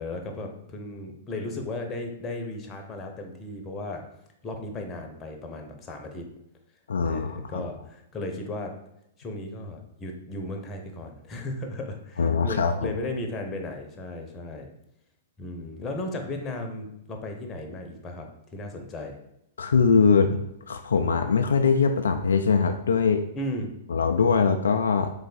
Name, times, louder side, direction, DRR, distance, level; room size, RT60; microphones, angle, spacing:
voice 1, 0.0-4.0 4.4-6.3 7.0-8.7 9.2-14.7 15.4-19.2 23.3-23.7, left 2 dB, 25° left, 3 dB, 0.8 m, -35 dB
voice 2, 6.9-7.6 12.2-12.9 19.6-20.4 20.7-23.2 23.9-25.1, left 5 dB, 75° left, 6 dB, 0.3 m, -22 dB
3.9 x 3.3 x 3.9 m, 0.81 s
figure-of-eight pair, 110°, 0 cm